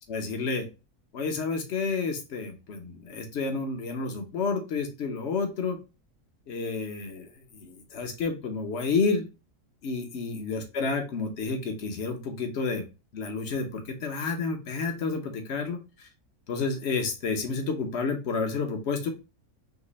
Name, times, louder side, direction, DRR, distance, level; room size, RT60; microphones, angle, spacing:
voice 1, 0.1-0.7 1.1-5.8 6.5-9.3 9.8-12.8 13.1-16.1 16.5-19.1, left 4 dB, 50° left, 4 dB, 1.3 m, -30 dB
5.2 x 3.1 x 3.1 m, 0.28 s
omnidirectional pair, 1.5 m